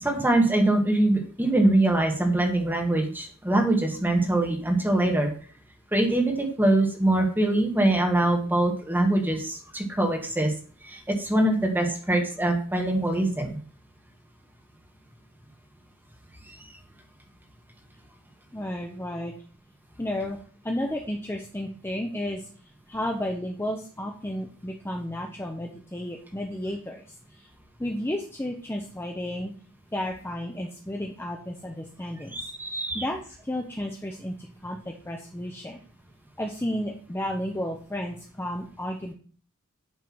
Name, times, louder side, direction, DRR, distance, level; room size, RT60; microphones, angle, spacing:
voice 1, 0.0-5.3 5.9-10.5 10.8-13.6 16.5-16.6 32.3-33.0, right 1 dB, 10° right, 1 dB, 1.5 m, -23 dB
voice 2, 18.5-19.3 20.0-20.4 20.6-22.5 22.9-27.0 27.3-27.4 27.8-29.5 29.9-32.4 32.9-35.8 36.4-39.1, left 1 dB, 10° left, 1 dB, 0.7 m, -32 dB
9.5 x 3.5 x 5.9 m, 0.43 s
head